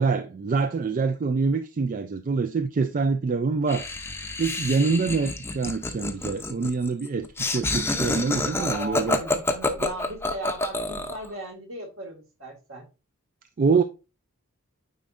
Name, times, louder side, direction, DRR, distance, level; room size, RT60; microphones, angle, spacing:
voice 1, 0.0-3.9 4.4-9.2 13.6-13.8, right 4 dB, 35° right, 0.4 m, -25 dB
Laughter, 3.7-11.3, left 2 dB, 10° left, 0.6 m, -28 dB
voice 2, 8.5-12.9 13.7-13.8, right 2 dB, 65° right, 2.1 m, -37 dB
9.2 x 4.2 x 2.5 m
head